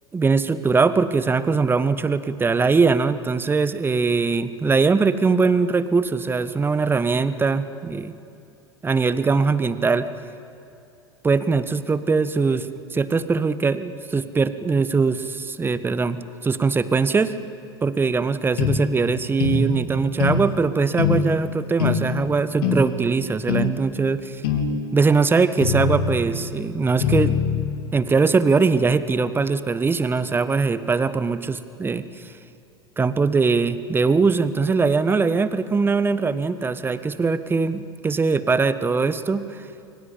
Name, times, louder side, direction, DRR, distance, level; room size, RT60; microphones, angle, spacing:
voice 1, 0.1-8.1 8.8-10.1 11.2-17.3 17.8-24.4 24.9-27.4 27.9-32.3 33.0-39.7, right 4 dB, 15° right, 13 dB, 1.3 m, -21 dB
sound 1, 18.6-18.8 19.4-19.6 20.2-20.4 21.0-21.2 21.8-22.0 22.6-22.8 23.5-23.7 24.4-24.7 25.6-26.2 27.0-27.7, left 5 dB, 60° left, 3.4 m, -22 dB
30.0 x 22.5 x 8.5 m, 2.6 s
figure-of-eight pair, 75°, 14 cm